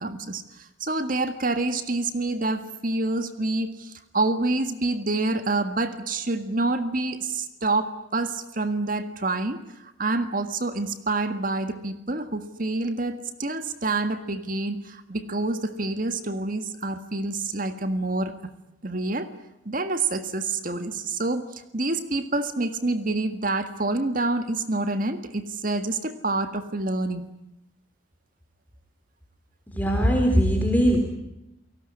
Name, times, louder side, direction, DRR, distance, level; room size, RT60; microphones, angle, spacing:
voice 1, 0.0-18.4 18.8-19.3 19.7-27.3, right 2 dB, 45° right, 10 dB, 1.7 m, -27 dB
voice 2, 29.7-31.0, equal, 10° left, 2 dB, 4.0 m, -20 dB
29.5 x 18.5 x 10.0 m, 0.90 s
head